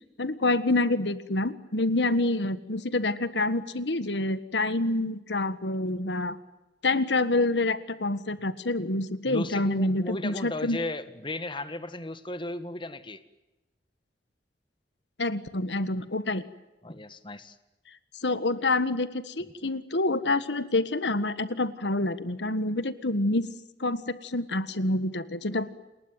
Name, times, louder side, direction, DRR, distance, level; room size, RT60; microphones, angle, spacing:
voice 1, 0.2-6.4 6.8-10.8 15.2-16.4 18.2-23.5 23.8-25.7, left 2 dB, 80° left, 14 dB, 1.6 m, -27 dB
voice 2, 9.3-13.2 16.8-17.6, left 2 dB, 30° left, 11 dB, 1.7 m, -35 dB
29.5 x 20.5 x 9.3 m, 0.99 s
head